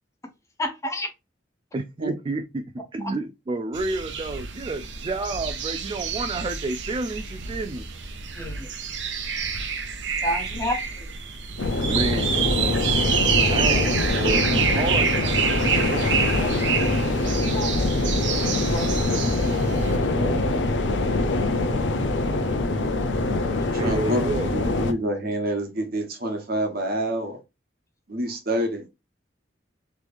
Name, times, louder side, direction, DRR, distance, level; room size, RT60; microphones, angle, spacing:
voice 1, 0.6-1.1 8.4-8.7 10.2-11.1 17.2-17.9 18.6-19.3, left 1 dB, 15° left, 0.7 m, -31 dB
voice 2, 1.7-7.9 11.9-12.5 13.4-16.1 23.8-24.5, right 2 dB, 30° right, 0.3 m, -30 dB
sound 1, 3.7-20.0, right 6 dB, 75° right, 0.7 m, -28 dB
sound 2, 11.6-24.9, left 2 dB, 75° left, 0.6 m, -24 dB
voice 3, 19.0-20.5 23.8-27.4 28.1-28.9, right 1 dB, 55° right, 1.0 m, -28 dB
3.4 x 3.0 x 2.5 m
head